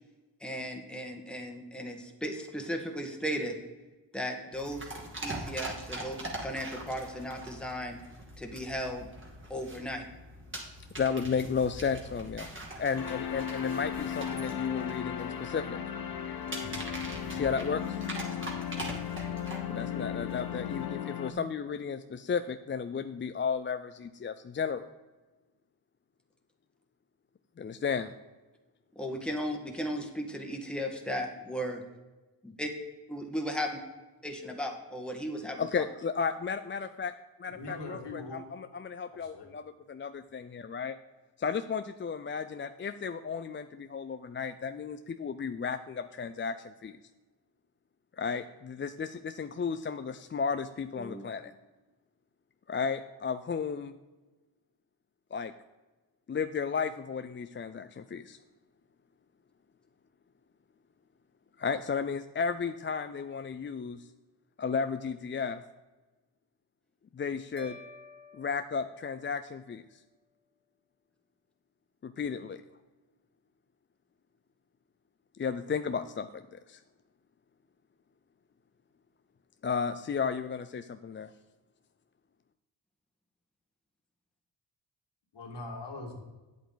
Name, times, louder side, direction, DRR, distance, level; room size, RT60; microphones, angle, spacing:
voice 1, 0.4-3.5 4.1-4.9 5.2-8.0 8.4-9.1 9.5-10.0 28.9-31.8 32.4-32.7 33.1-33.7 34.2-35.8 51.0-51.2, equal, ahead, 2 dB, 1.6 m, -36 dB
sound 1, 4.5-20.9, right 1 dB, 25° right, 2.6 m, -43 dB
voice 2, 11.0-12.5 12.8-15.8 17.3-18.0 19.7-24.9 27.6-28.1 35.6-37.1 37.4-41.0 41.4-47.0 48.2-51.5 52.7-53.9 55.3-55.5 56.3-58.4 61.6-64.1 64.6-65.6 67.1-67.8 68.3-69.8 72.0-72.6 75.4-76.8 79.6-81.3, left 6 dB, 30° left, 10 dB, 0.4 m, -33 dB
sound 2, 12.9-21.3, left 9 dB, 55° left, 1.0 m, -36 dB
voice 3, 37.5-38.4 39.1-39.5 85.3-86.1, left 2 dB, 70° left, 1 dB, 2.3 m, -41 dB
sound 3, 67.6-69.9, equal, 75° right, 1.8 m, -52 dB
9.0 x 8.2 x 4.0 m, 1.2 s
cardioid pair, 70°, 43 cm